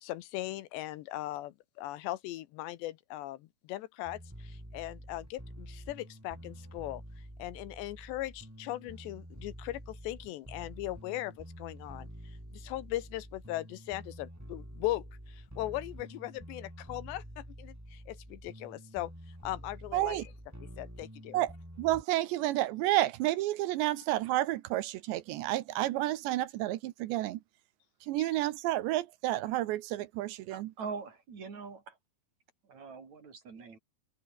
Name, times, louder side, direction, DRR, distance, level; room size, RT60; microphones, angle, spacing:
voice 1, 0.0-7.0 7.4-19.1 19.4-20.3 20.6-21.4 28.2-28.3, left 15 dB, 75° left, 3.0 m, -39 dB
sound 1, 4.0-22.0, equal, 5° right, 6.1 m, -48 dB
voice 2, 19.9-20.2 21.3-21.5 21.8-27.4 28.1-30.7, right 15 dB, 80° right, 3.1 m, -30 dB
voice 3, 30.5-32.0 32.7-33.8, right 5 dB, 40° right, 4.9 m, -43 dB
open air
omnidirectional pair, 5.2 m